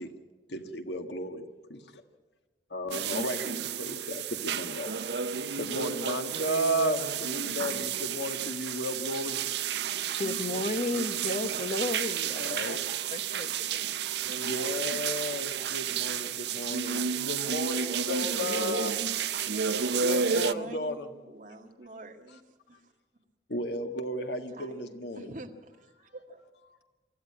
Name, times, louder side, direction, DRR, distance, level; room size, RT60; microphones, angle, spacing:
voice 1, 0.5-1.4 1.7-1.8 2.7-4.9 5.5-9.4 12.3-12.9 14.4-19.0 19.9-21.1 23.5-25.3, equal, 75° left, 7 dB, 1.7 m, -34 dB
sound 1, 2.9-20.5, right 7 dB, 75° right, 0.7 m, -31 dB
voice 2, 10.2-12.8 13.1-13.9, left 2 dB, 40° left, 10 dB, 0.9 m, -33 dB
voice 3, 20.0-22.4 22.7-22.9 24.5-26.4, right 1 dB, 45° right, 2 dB, 1.9 m, -46 dB
24.5 x 14.5 x 8.6 m, 1.3 s
head